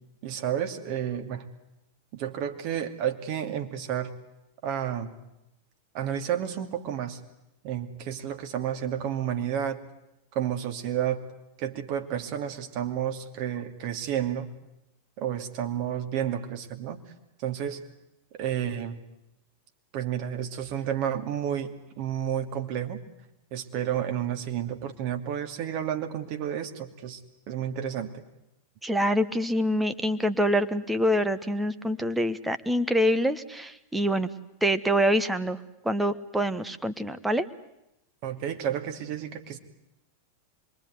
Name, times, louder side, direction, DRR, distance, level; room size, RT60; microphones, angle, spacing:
voice 1, 0.2-1.5 2.1-4.1 4.6-5.1 5.9-7.2 7.6-9.8 10.3-11.3 11.6-14.5 15.2-17.0 17.4-17.8 18.4-19.0 19.9-23.0 23.5-27.2 27.5-28.2 38.2-39.6, right 9 dB, 45° right, 5 dB, 2.5 m, -31 dB
voice 2, 28.8-34.3 34.6-35.6 35.8-37.5, equal, 5° right, 10 dB, 1.4 m, -25 dB
26.0 x 23.0 x 9.5 m, 0.89 s
figure-of-eight pair, 90°, 0 cm